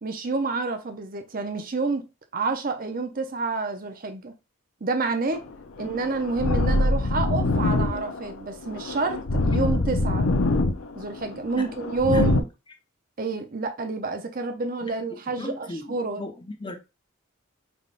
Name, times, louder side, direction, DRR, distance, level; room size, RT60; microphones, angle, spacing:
voice 1, 0.0-2.0 2.3-4.3 4.8-5.4 5.8-10.3 11.0-12.4 13.2-16.2, right 3 dB, 40° right, 0.7 m, -28 dB
sound 1, 5.3-12.4, left 2 dB, 90° left, 0.7 m, -24 dB
voice 2, 14.8-16.8, left 2 dB, 20° left, 0.7 m, -37 dB
5.3 x 3.5 x 2.4 m
head